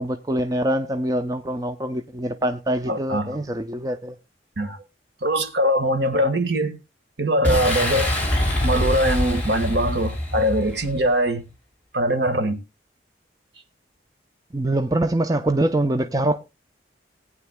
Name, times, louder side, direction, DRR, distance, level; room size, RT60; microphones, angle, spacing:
voice 1, 0.0-4.1 14.5-16.4, right 1 dB, 20° right, 0.5 m, -24 dB
voice 2, 2.9-3.4 4.6-4.8 5.2-6.8 7.2-8.1 8.6-11.4 11.9-12.6, equal, 65° right, 1.5 m, -22 dB
Boom, 7.4-11.1, left 1 dB, 10° left, 2.9 m, -24 dB
18.5 x 9.7 x 2.2 m
head